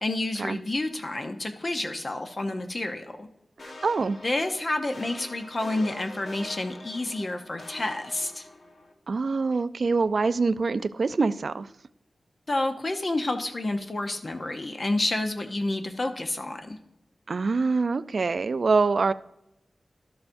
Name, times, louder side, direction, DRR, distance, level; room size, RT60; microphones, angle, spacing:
voice 1, 0.0-3.3 4.2-8.5 12.5-16.8, left 2 dB, 35° left, 0.6 m, -29 dB
sound 1, 3.6-8.9, left 2 dB, 70° left, 1.3 m, -44 dB
voice 2, 3.8-4.2 9.1-11.7 17.3-19.1, right 4 dB, 60° right, 0.3 m, -24 dB
12.5 x 7.0 x 2.6 m
wide cardioid pair, 110°, 0 cm